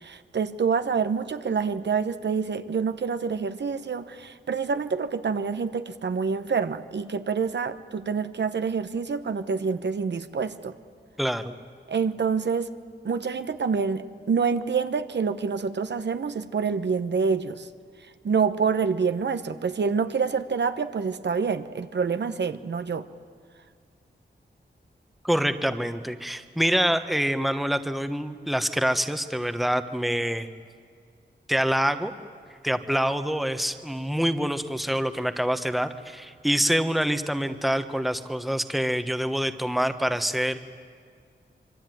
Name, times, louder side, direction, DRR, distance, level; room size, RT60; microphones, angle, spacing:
voice 1, 0.0-10.7 11.9-12.7 13.0-17.7 18.2-23.0, right 5 dB, 70° right, 10 dB, 1.1 m, -27 dB
voice 2, 11.2-11.5 25.2-30.5 31.5-32.1 32.6-40.6, equal, ahead, 9 dB, 1.2 m, -26 dB
26.0 x 24.0 x 9.2 m, 2.1 s
wide cardioid pair, 120°, 19 cm